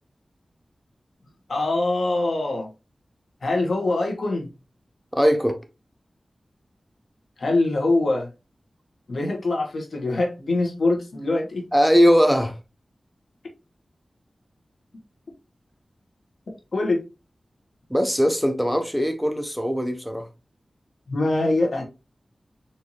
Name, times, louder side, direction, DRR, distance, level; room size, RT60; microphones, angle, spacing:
voice 1, 1.5-2.7 3.4-4.5 7.4-8.3 9.1-11.6 16.7-17.0 21.1-21.8, left 2 dB, 80° left, 1.2 m, -23 dB
voice 2, 5.1-5.6 11.7-12.5 17.9-20.3, equal, ahead, 0.5 m, -20 dB
4.3 x 2.7 x 2.9 m
wide cardioid pair, 90°, 0 cm